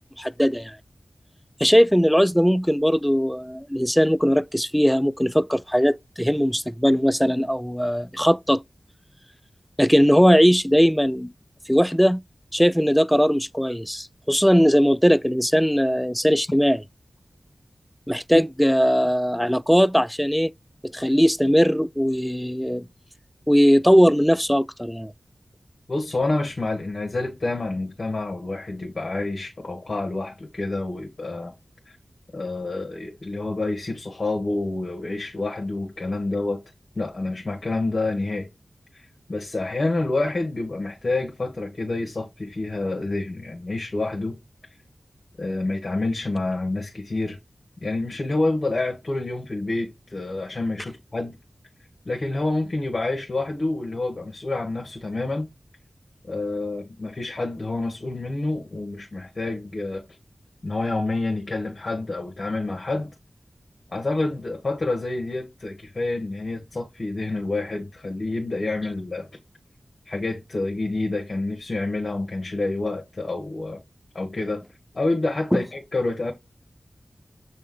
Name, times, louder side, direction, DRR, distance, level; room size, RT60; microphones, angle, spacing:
voice 1, 0.2-0.8 1.6-8.6 9.8-11.3 11.7-12.2 12.5-16.8 18.1-20.5 20.8-22.9 23.5-25.1 75.5-75.6, equal, 5° left, 0.3 m, -19 dB
voice 2, 25.9-31.6 31.9-32.0 32.3-36.6 36.9-38.5 38.9-44.4 45.4-47.4 47.8-51.3 52.0-55.5 56.2-60.0 60.6-63.1 63.9-69.3 70.0-73.8 74.1-74.6 74.9-76.3, left 2 dB, 55° left, 1.4 m, -28 dB
7.3 x 3.4 x 3.8 m
wide cardioid pair, 55°, 0 cm